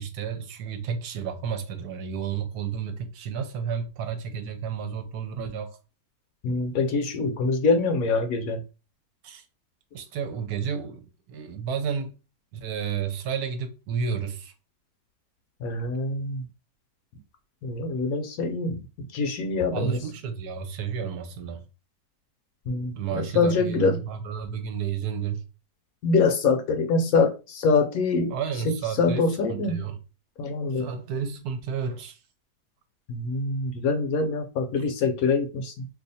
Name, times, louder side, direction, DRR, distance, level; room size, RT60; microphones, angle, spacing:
voice 1, 0.0-5.8 9.2-9.4 9.9-12.1 12.5-14.5 19.7-21.6 23.0-25.4 28.3-29.2 29.5-30.0 30.7-32.2, right 7 dB, 75° right, 1.1 m, -31 dB
voice 2, 6.4-8.6 15.6-16.5 17.6-18.8 19.1-20.0 22.7-24.0 26.0-28.3 28.6-29.8 30.4-30.9 33.1-35.9, left 4 dB, 70° left, 1.0 m, -24 dB
2.7 x 2.4 x 4.0 m
omnidirectional pair, 1.7 m